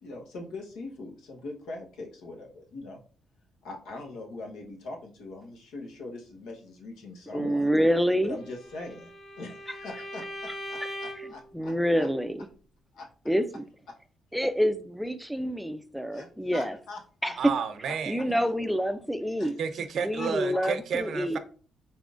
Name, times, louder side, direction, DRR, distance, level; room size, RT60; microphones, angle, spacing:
voice 1, 0.0-3.0 3.6-7.7 8.2-9.1 9.4-12.1 12.9-13.1 16.1-17.3 19.4-19.5 20.2-20.7, left 2 dB, 90° left, 1.0 m, -42 dB
voice 2, 7.3-8.4 11.2-12.5 13.3-13.6 14.3-16.8 17.2-17.5 18.1-19.6 20.0-21.4, equal, ahead, 0.4 m, -27 dB
Bowed string instrument, 8.4-11.4, equal, 70° left, 1.5 m, -40 dB
voice 3, 17.4-18.4 19.6-21.4, right 6 dB, 65° right, 0.5 m, -31 dB
4.1 x 3.6 x 2.5 m
cardioid pair, 90°, 0 cm